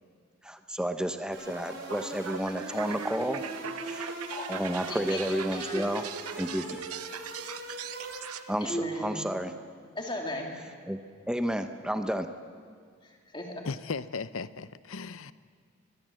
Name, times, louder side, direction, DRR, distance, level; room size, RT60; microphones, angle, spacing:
voice 1, 0.4-3.4 3.8-4.2 4.5-6.0 6.4-6.8 8.5-8.7 9.0-9.5 10.9-11.0 11.3-12.3, equal, 5° right, 0.8 m, -31 dB
sound 1, 1.3-8.7, right 2 dB, 55° right, 5.6 m, -41 dB
sound 2, 1.5-8.4, right 8 dB, 85° right, 0.8 m, -41 dB
voice 2, 4.8-5.9 8.6-9.2 9.9-10.6 13.0-13.7, left 1 dB, 20° left, 2.9 m, -36 dB
voice 3, 13.6-15.3, left 4 dB, 65° left, 0.7 m, -36 dB
23.0 x 22.0 x 7.7 m
head